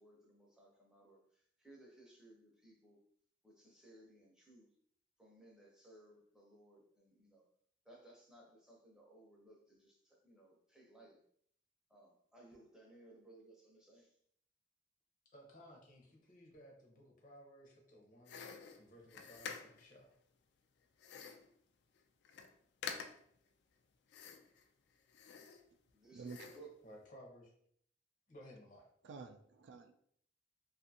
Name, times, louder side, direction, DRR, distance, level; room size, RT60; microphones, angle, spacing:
voice 1, 0.0-3.0 3.4-4.7 5.2-7.5 7.8-11.2 11.9-14.2 25.9-26.9, right 2 dB, 5° right, -3 dB, 0.6 m, -61 dB
voice 2, 15.3-18.4 18.8-20.1 26.8-27.5 28.3-28.8, equal, 45° left, -1 dB, 0.7 m, -58 dB
sound 1, 18.3-19.9 21.0-21.5 22.0-22.1 22.2-22.5 22.8-23.4 24.1-24.6 25.1-25.9 26.3-26.7, left 6 dB, 60° left, 0.3 m, -48 dB
voice 3, 29.0-29.9, right 4 dB, 70° right, 6 dB, 0.3 m, -50 dB
2.5 x 2.4 x 2.7 m, 0.64 s
head